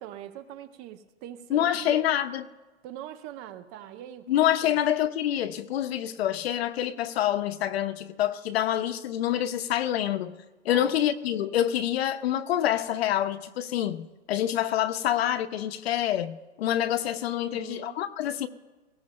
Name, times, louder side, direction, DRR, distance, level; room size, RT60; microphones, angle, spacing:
voice 1, 0.0-1.9 2.8-4.4 4.6-4.8 10.7-11.0 17.4-18.0, right 11 dB, 30° right, 0.6 m, -42 dB
voice 2, 1.5-2.5 4.3-10.3 10.6-18.5, left 11 dB, 60° left, 0.9 m, -27 dB
19.5 x 16.0 x 2.2 m
hypercardioid pair, 130°, 35 cm